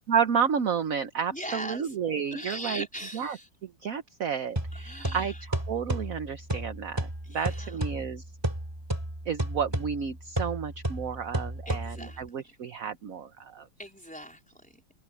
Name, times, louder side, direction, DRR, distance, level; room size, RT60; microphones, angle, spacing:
voice 1, 0.0-2.9 3.1-3.4 3.6-8.2 9.3-13.7, right 7 dB, 50° right, 1.2 m, -31 dB
voice 2, 1.3-1.9 2.3-3.5 4.7-5.4 7.2-8.0 11.7-12.2 13.8-14.9, equal, 5° left, 4.1 m, -40 dB
sound 1, 4.6-12.3, right 1 dB, 10° right, 2.9 m, -33 dB
omnidirectional pair, 2.1 m